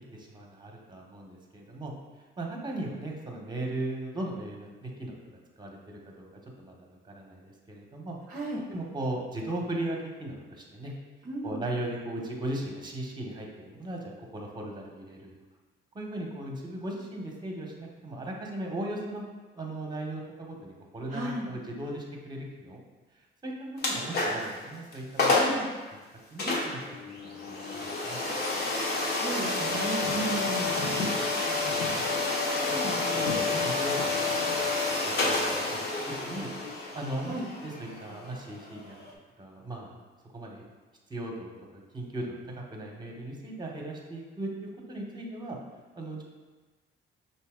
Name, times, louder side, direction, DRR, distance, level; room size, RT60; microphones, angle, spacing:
voice 1, 0.0-1.9 2.4-5.2 5.6-8.2 8.7-10.9 11.4-15.3 15.9-22.8 23.1-25.4 26.3-28.2 31.5-31.7 32.7-34.1 34.6-36.5 36.9-37.3 37.6-39.0 39.4-40.0 40.3-40.6 41.1-45.6 46.0-46.2, right 1 dB, 20° right, 0 dB, 1.0 m, -38 dB
voice 2, 8.3-8.6 11.2-11.6 21.1-21.5 25.4-25.7 28.8-30.8 37.2-37.5, right 2 dB, 45° right, -2 dB, 0.6 m, -35 dB
sound 1, 23.8-24.5 24.9-25.0 25.2-25.6 26.4-39.1, left 3 dB, 55° left, 1.0 m, -29 dB
5.2 x 2.8 x 3.6 m, 1.3 s
cardioid pair, 90°, 20 cm